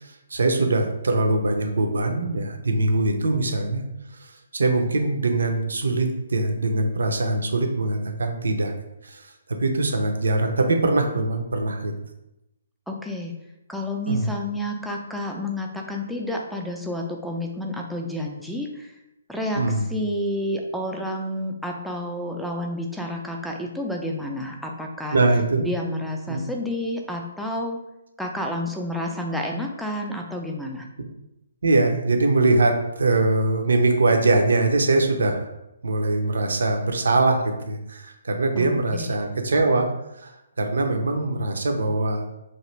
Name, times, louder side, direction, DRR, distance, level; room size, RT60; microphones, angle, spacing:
voice 1, 0.0-3.8 4.1-8.8 9.0-9.3 9.6-11.9 14.1-14.3 19.6-19.9 25.1-25.6 26.3-26.4 31.6-35.5 35.8-39.9 40.2-42.2, right 2 dB, 70° right, 4 dB, 0.5 m, -22 dB
voice 2, 12.9-13.3 13.7-18.9 19.3-19.6 19.9-25.2 25.6-27.8 28.2-30.9 38.6-39.1, left 1 dB, ahead, 0 dB, 0.4 m, -30 dB
2.9 x 2.5 x 3.1 m, 0.89 s
figure-of-eight pair, 135°, 0 cm